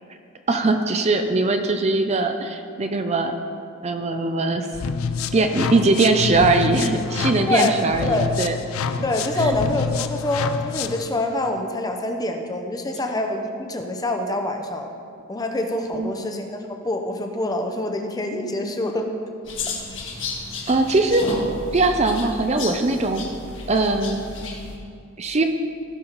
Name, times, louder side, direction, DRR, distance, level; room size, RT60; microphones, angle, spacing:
voice 1, 0.5-3.3 3.8-4.7 5.3-8.5 9.4-9.5 15.9-16.3 20.7-21.3 21.7-23.3 23.7-24.2 25.2-25.4, right 3 dB, 30° right, 6 dB, 0.5 m, -21 dB
sound 1, 4.7-11.1, left 5 dB, 80° left, 0.5 m, -27 dB
voice 2, 7.5-8.3 9.0-14.9 15.3-16.6 16.8-19.1 19.9-20.0, left 1 dB, 20° left, 4 dB, 0.7 m, -25 dB
sound 2, 19.5-24.8, left 3 dB, 60° left, 1.7 m, -32 dB
16.0 x 5.6 x 4.0 m, 2.4 s
head